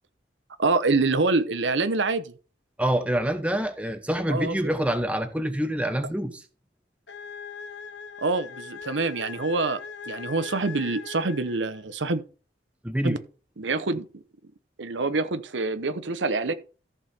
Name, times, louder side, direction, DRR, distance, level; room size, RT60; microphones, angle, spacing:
voice 1, 0.6-2.3 4.3-4.8 8.2-9.8 10.1-12.2 13.0-13.2 13.6-14.0 14.8-16.5, right 3 dB, 85° right, 0.9 m, -26 dB
voice 2, 2.8-6.4 12.8-13.2, right 1 dB, 5° right, 0.9 m, -26 dB
sound 1, 7.1-11.9, left 6 dB, 75° left, 1.1 m, -40 dB
14.0 x 5.5 x 4.3 m
head